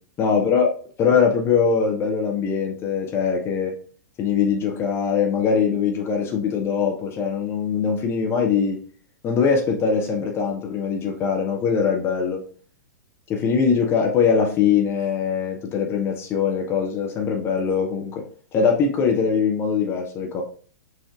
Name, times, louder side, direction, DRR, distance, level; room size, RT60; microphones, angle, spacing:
voice 1, 0.2-0.7 1.0-3.7 4.2-8.8 9.2-12.4 13.3-18.2 18.5-20.4, left 6 dB, 25° left, 2 dB, 0.7 m, -22 dB
5.7 x 2.6 x 2.3 m, 0.43 s
figure-of-eight pair, 105°, 10 cm